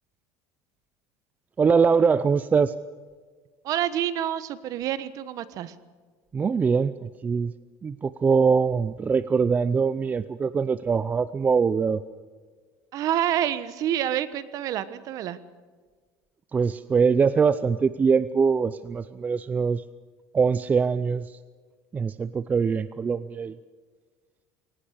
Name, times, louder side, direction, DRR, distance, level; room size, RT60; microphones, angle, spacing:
voice 1, 1.6-2.7 6.3-7.5 7.8-12.0 16.5-19.8 20.3-21.4 21.9-23.5, right 5 dB, 20° right, 15 dB, 0.5 m, -23 dB
voice 2, 3.6-5.7 12.9-15.4, right 11 dB, 50° right, 14 dB, 1.3 m, -28 dB
22.0 x 19.0 x 6.6 m, 1.5 s
cardioid pair, 140°, 8 cm